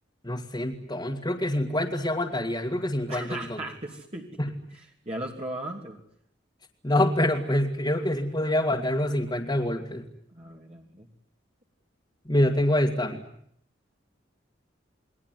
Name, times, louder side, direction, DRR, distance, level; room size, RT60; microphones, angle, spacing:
voice 1, 0.2-3.6 4.4-4.5 6.8-10.0 12.3-13.2, left 1 dB, 25° left, -2 dB, 2.2 m, -26 dB
voice 2, 3.1-4.3 4.7-6.0 10.3-11.1, right 1 dB, 35° right, -1 dB, 2.9 m, -37 dB
29.5 x 21.0 x 9.5 m, 0.71 s
head